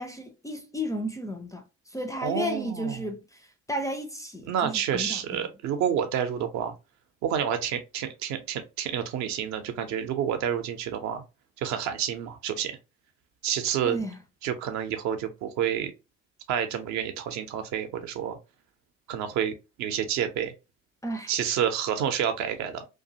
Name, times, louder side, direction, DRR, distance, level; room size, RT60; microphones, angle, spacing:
voice 1, 0.0-3.2 3.7-5.4 13.8-14.2 21.0-21.3, equal, 10° left, 0.4 m, -33 dB
voice 2, 2.2-3.1 4.4-6.7 7.2-11.2 11.6-12.8 13.4-14.0 14.4-15.9 16.5-18.4 19.1-20.5 21.3-22.9, right 9 dB, 50° right, 0.6 m, -29 dB
2.6 x 2.2 x 2.7 m
figure-of-eight pair, 45°, 36 cm